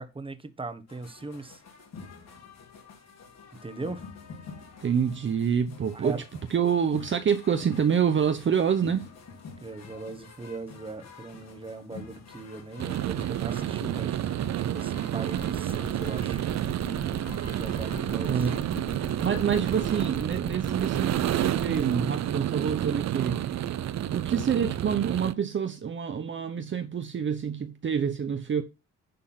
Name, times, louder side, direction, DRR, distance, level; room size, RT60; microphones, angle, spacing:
voice 1, 0.0-1.6 3.6-4.0 5.9-6.2 9.6-16.4 17.5-18.5, right 3 dB, 15° right, 1.3 m, -39 dB
sound 1, 0.9-20.1, left 5 dB, 60° left, 3.2 m, -47 dB
voice 2, 4.8-6.2 6.5-9.1 18.3-18.6 19.0-23.4 24.1-28.6, right 7 dB, 40° right, 0.9 m, -27 dB
sound 2, 12.8-25.3, right 11 dB, 60° right, 0.7 m, -30 dB
sound 3, 15.4-21.9, left 1 dB, 5° left, 0.7 m, -40 dB
10.5 x 3.8 x 5.8 m
cardioid pair, 90°, 30 cm